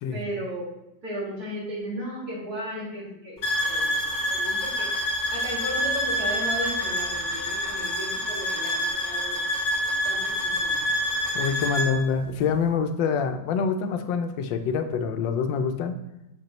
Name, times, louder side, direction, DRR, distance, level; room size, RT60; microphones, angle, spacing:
voice 1, 0.1-0.7 1.0-4.0 4.3-9.4 10.0-10.8, equal, 55° right, -5 dB, 2.5 m, -35 dB
sound 1, 3.4-11.9, equal, 45° left, 1.8 m, -27 dB
voice 2, 11.3-16.0, left 6 dB, 85° left, 8 dB, 1.3 m, -26 dB
7.3 x 5.3 x 3.0 m, 0.89 s
omnidirectional pair, 2.0 m